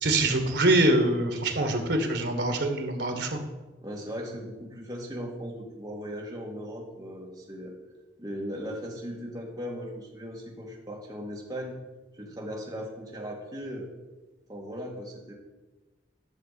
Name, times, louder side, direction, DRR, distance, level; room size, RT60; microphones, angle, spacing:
voice 1, 0.0-3.4, right 1 dB, 70° right, 5 dB, 1.5 m, -24 dB
voice 2, 3.8-7.7 8.2-11.7 12.1-13.9 14.5-15.3, equal, 20° right, -3 dB, 1.9 m, -38 dB
11.5 x 6.7 x 4.1 m, 1.2 s
head